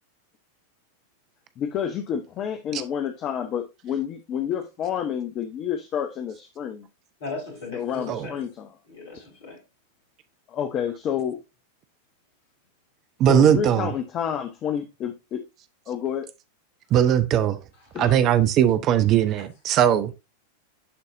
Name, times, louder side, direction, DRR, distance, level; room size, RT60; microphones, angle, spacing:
voice 1, 1.6-6.9 7.7-8.7 10.5-11.4 13.3-15.5 15.9-16.3 17.9-18.3, left 8 dB, 30° left, 0.8 m, -29 dB
voice 2, 7.2-8.4 8.9-9.6 19.4-19.5, left 3 dB, 55° left, 3.9 m, -37 dB
voice 3, 13.2-13.9 16.9-17.6 18.0-20.1, right 10 dB, 35° right, 0.6 m, -19 dB
11.0 x 4.1 x 2.6 m
figure-of-eight pair, 90°, 0 cm